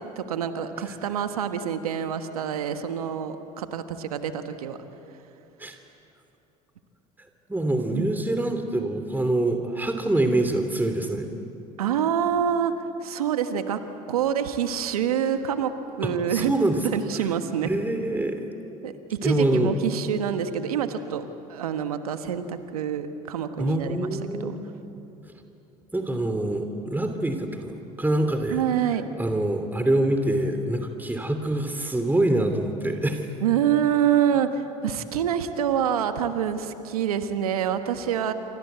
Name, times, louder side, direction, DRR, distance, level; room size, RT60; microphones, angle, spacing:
voice 1, 0.0-4.8 7.9-8.0 11.8-12.7 13.0-13.8 14.1-15.7 16.0-16.5 16.8-17.7 18.8-21.2 21.5-24.1 24.4-24.6 28.5-29.1 33.4-38.3, right 9 dB, 90° right, 8 dB, 1.4 m, -26 dB
voice 2, 7.5-11.3 16.0-16.8 17.2-17.3 17.6-18.4 19.2-19.7 23.6-24.5 25.9-28.6 29.2-33.3, right 1 dB, 10° right, 6 dB, 2.9 m, -25 dB
29.0 x 25.0 x 8.1 m, 2.9 s
hypercardioid pair, 75°, 19 cm